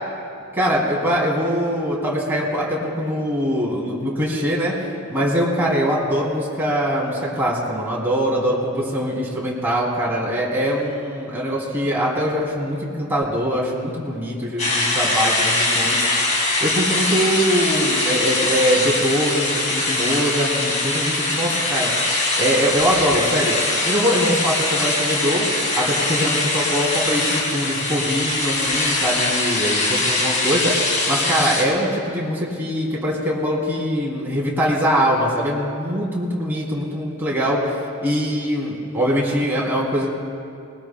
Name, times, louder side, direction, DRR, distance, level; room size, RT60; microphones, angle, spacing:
voice 1, 0.5-4.7 5.1-16.1 16.6-21.9 22.4-23.6 23.8-25.5 25.7-37.7 38.0-40.1, equal, 10° right, -5 dB, 2.8 m, -22 dB
sound 1, 14.6-31.6, left 2 dB, 35° left, 2.4 m, -22 dB
20.5 x 20.0 x 2.2 m, 2.5 s
head